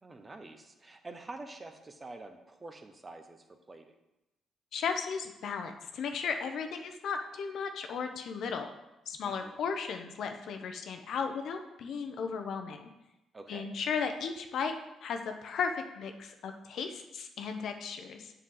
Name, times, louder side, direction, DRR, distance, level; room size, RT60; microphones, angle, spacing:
voice 1, 0.0-3.9 9.2-9.6 13.3-13.8, right 2 dB, 25° right, 6 dB, 0.9 m, -47 dB
voice 2, 4.7-8.7 9.1-12.9 13.5-14.7 15.0-18.3, left 6 dB, 70° left, 6 dB, 0.8 m, -35 dB
7.6 x 6.6 x 3.9 m, 0.95 s
cardioid pair, 90°, 0 cm